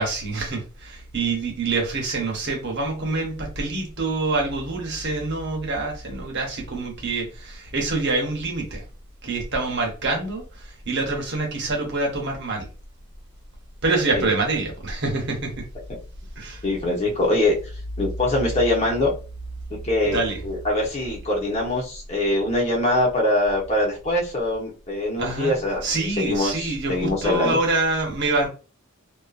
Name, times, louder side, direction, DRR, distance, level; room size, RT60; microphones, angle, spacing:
voice 1, 0.0-8.8 9.2-12.7 13.8-15.7 16.4-16.6 20.1-20.4 25.2-28.5, right 3 dB, 55° right, 1.0 m, -26 dB
voice 2, 16.6-17.5 18.0-19.1 19.7-27.6, left 1 dB, 30° left, 1.0 m, -23 dB
2.6 x 2.5 x 2.4 m
head